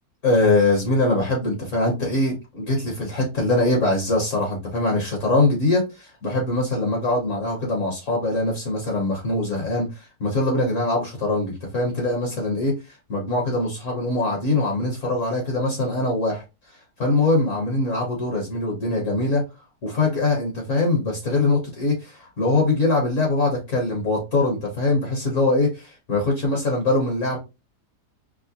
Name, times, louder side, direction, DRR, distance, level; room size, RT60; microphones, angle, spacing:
voice 1, 0.2-16.4 17.0-19.4 19.8-27.4, left 2 dB, 50° left, 1.3 m, -22 dB
4.8 x 2.1 x 2.7 m
omnidirectional pair, 1.8 m